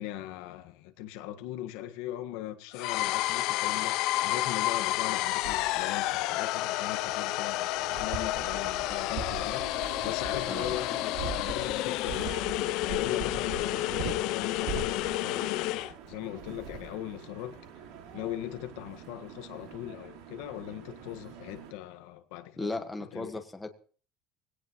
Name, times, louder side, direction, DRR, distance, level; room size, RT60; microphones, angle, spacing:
voice 1, 0.0-15.8 16.1-17.6 18.1-22.7 23.1-23.4, left 13 dB, 80° left, 1.6 m, -39 dB
sound 1, 2.7-15.9, left 17 dB, 65° left, 0.6 m, -30 dB
sound 2, 5.4-21.7, right 6 dB, 80° right, 3.3 m, -42 dB
voice 2, 22.6-23.7, left 2 dB, 10° left, 1.6 m, -36 dB
20.0 x 17.0 x 3.1 m
cardioid pair, 150°, 0 cm